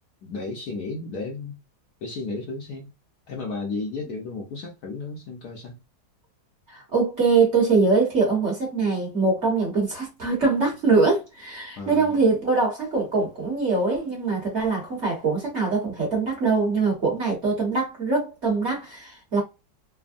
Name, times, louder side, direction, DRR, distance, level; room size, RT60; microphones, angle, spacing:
voice 1, 0.2-1.5 2.0-2.9 3.3-5.8 11.8-12.2, left 3 dB, 65° left, 1.0 m, -33 dB
voice 2, 6.7-19.4, right 4 dB, 45° right, 1.2 m, -23 dB
3.4 x 2.1 x 2.4 m
omnidirectional pair, 2.0 m